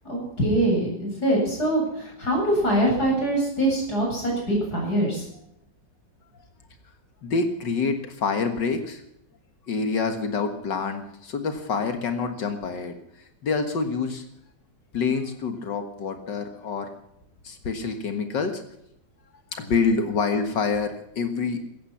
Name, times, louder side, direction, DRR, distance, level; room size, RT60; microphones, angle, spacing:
voice 1, 0.1-5.3, right 1 dB, 60° left, -1 dB, 8.8 m, -23 dB
voice 2, 7.2-9.0 9.7-14.3 14.9-16.9 17.4-18.6 19.5-21.6, left 4 dB, 75° left, 6 dB, 2.2 m, -27 dB
16.5 x 14.5 x 5.8 m, 0.77 s
omnidirectional pair, 1.9 m